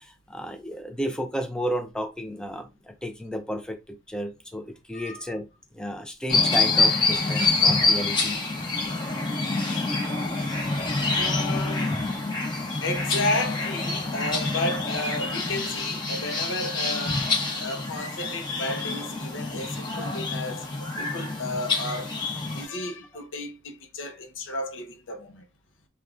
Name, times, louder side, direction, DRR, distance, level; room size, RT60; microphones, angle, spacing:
voice 1, 0.0-5.5 5.7-8.4 21.0-21.1, equal, 5° left, 0.4 m, -33 dB
sound 1, 6.3-22.7, left 3 dB, 25° left, 0.9 m, -26 dB
voice 2, 11.2-12.0 12.8-17.3 17.6-22.1 22.5-25.4, left 2 dB, 80° left, 0.7 m, -32 dB
3.4 x 2.3 x 2.4 m
head